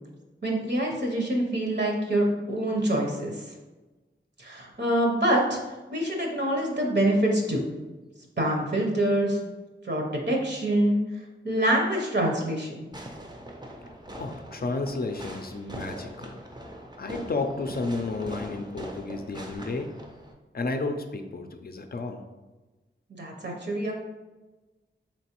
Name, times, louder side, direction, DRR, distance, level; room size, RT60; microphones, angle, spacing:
voice 1, 0.4-3.4 4.4-5.6 5.9-7.6 8.4-9.4 9.8-11.0 11.4-12.8 23.1-23.9, right 1 dB, 55° right, 0 dB, 0.8 m, -25 dB
Fireworks, 12.9-20.3, right 1 dB, 20° right, 0.5 m, -41 dB
voice 2, 14.2-16.4 17.0-19.9 20.5-22.2, left 3 dB, 50° left, 6 dB, 0.4 m, -32 dB
4.4 x 3.1 x 2.9 m, 1.1 s
wide cardioid pair, 80°, 21 cm